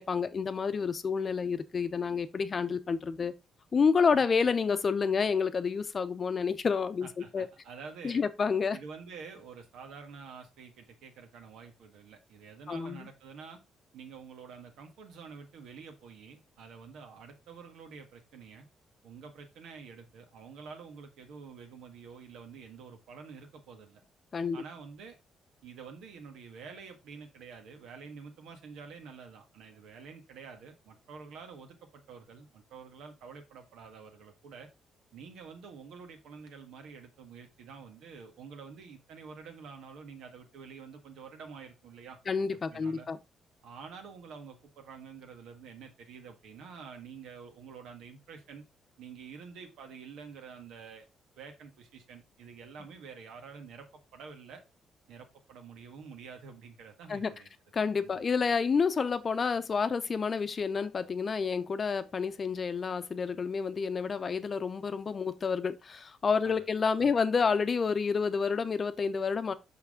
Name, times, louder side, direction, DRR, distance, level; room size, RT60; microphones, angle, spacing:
voice 1, 0.0-3.3 3.7-7.5 8.0-8.8 12.7-13.0 24.3-24.6 42.3-43.2 57.1-57.3 57.7-69.5, left 5 dB, 35° left, 0.7 m, -29 dB
voice 2, 7.0-8.2 8.7-13.6 13.9-18.7 19.0-24.0 24.5-25.2 25.6-34.7 35.1-42.2 42.5-43.1 43.6-48.6 49.0-51.1 51.4-53.9 54.1-54.6 55.1-57.5 58.0-58.2 66.4-66.6 66.9-67.1, right 5 dB, 90° right, 1.6 m, -48 dB
6.0 x 5.8 x 3.7 m
cardioid pair, 125°, 0 cm